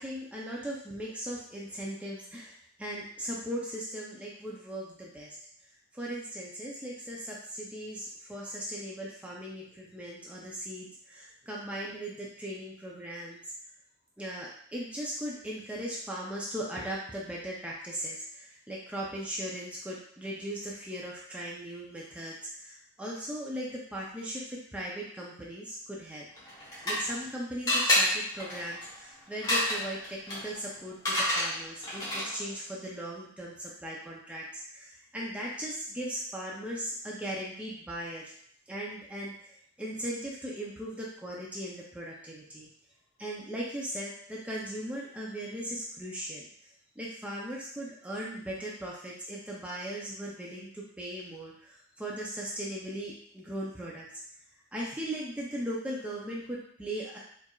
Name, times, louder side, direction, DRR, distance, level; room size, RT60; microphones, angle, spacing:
voice 1, 0.0-5.4 5.9-13.4 14.2-26.3 26.8-38.3 38.7-42.7 43.2-46.5 47.0-54.1 54.7-57.2, right 1 dB, 5° right, -4 dB, 0.5 m, -38 dB
sound 1, 26.4-27.3 27.7-32.5, left 1 dB, 15° left, 1.0 m, -30 dB
4.5 x 2.5 x 2.3 m, 0.63 s
head